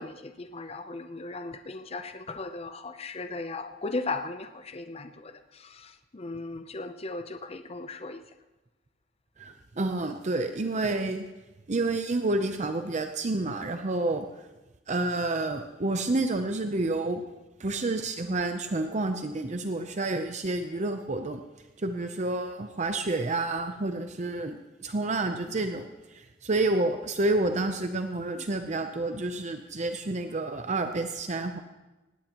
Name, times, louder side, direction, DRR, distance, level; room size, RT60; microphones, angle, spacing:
voice 1, 0.0-8.2, left 3 dB, 35° left, 9 dB, 0.6 m, -37 dB
voice 2, 9.4-11.3 11.7-14.3 14.9-17.2 17.6-21.4 21.8-31.6, right 2 dB, 40° right, 6 dB, 0.7 m, -29 dB
19.0 x 17.0 x 3.0 m, 1.1 s
head